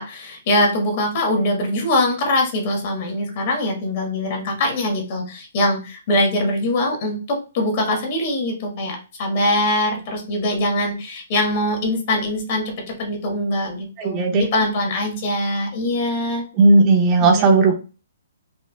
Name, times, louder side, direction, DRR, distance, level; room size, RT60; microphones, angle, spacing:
voice 1, 0.0-16.4 17.2-17.7, left 1 dB, 45° left, 1 dB, 1.4 m, -22 dB
voice 2, 14.0-14.5 16.5-17.7, right 3 dB, 25° right, 2 dB, 0.7 m, -15 dB
4.3 x 2.3 x 2.3 m, 0.33 s
hypercardioid pair, 150°, 0 cm